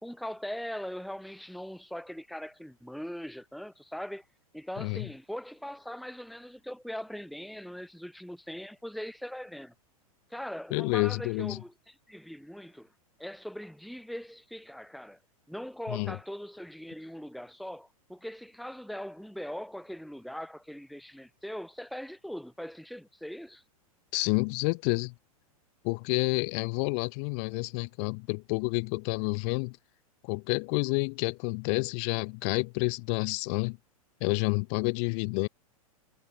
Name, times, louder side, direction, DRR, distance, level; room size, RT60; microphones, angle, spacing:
voice 1, 0.0-4.2 4.5-9.7 10.3-12.9 13.2-15.2 15.5-23.6, equal, ahead, 1.3 m, -41 dB
voice 2, 4.8-5.1 10.7-11.6 15.9-16.2 24.1-25.1 25.8-29.8 30.2-33.8 34.2-35.5, left 39 dB, 50° left, 1.6 m, -29 dB
hypercardioid pair, 105°, 19 cm